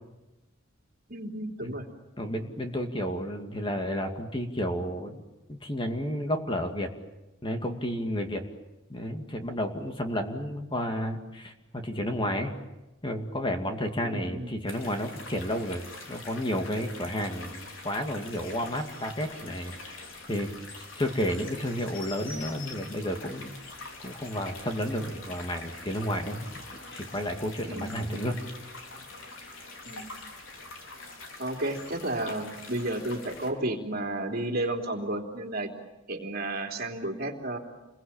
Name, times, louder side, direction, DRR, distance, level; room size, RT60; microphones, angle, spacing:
voice 1, 1.1-1.9 14.0-14.6 27.7-28.3 29.8-30.1 31.4-35.7 36.1-37.6, right 1 dB, 50° right, 2 dB, 3.5 m, -32 dB
voice 2, 2.2-5.2 5.5-6.9 7.4-8.4 8.9-12.6 13.0-20.5 20.7-23.5 24.0-28.4, equal, 25° left, 4 dB, 2.4 m, -32 dB
sound 1, 14.7-33.5, left 3 dB, 75° left, 4.5 m, -44 dB
29.0 x 22.5 x 9.0 m, 1.0 s
head